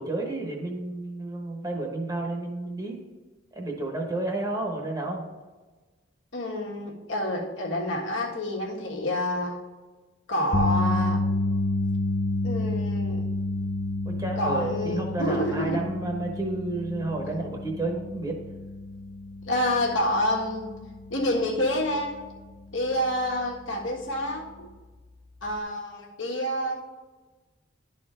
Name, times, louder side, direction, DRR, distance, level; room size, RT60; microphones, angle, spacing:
voice 1, 0.0-3.0 3.5-5.2 14.0-18.4, right 2 dB, 20° right, 1 dB, 1.1 m, -31 dB
voice 2, 6.3-9.6 10.3-11.2 12.4-13.2 14.4-15.8 19.5-20.7 21.1-22.2 22.7-24.7 25.4-26.7, left 1 dB, 75° left, -2 dB, 1.5 m, -28 dB
sound 1, 10.5-22.8 23.1-23.4 25.6-25.7, left 2 dB, 30° left, 0.5 m, -30 dB
11.0 x 4.3 x 3.7 m, 1.3 s
head